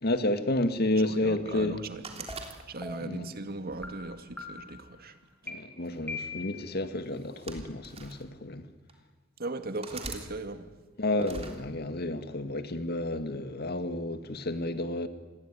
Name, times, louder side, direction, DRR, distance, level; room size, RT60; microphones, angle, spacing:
voice 1, 0.0-1.8 3.0-3.3 5.5-8.7 11.0-15.1, left 1 dB, 55° left, 1.9 m, -30 dB
voice 2, 1.0-5.2 9.4-10.7, right 2 dB, 50° right, 2.1 m, -38 dB
sound 1, 2.0-3.1 3.7-4.9 5.9-6.1 7.1-8.2 8.9-9.0 9.8-10.3 11.2-11.6, right 3 dB, 30° right, 3.4 m, -42 dB
sound 2, 2.3-2.4 2.8-3.2 3.8-3.9 4.4-4.8 5.5-5.6 6.1-6.7, left 4 dB, 10° left, 3.8 m, -40 dB
28.0 x 21.5 x 9.8 m
head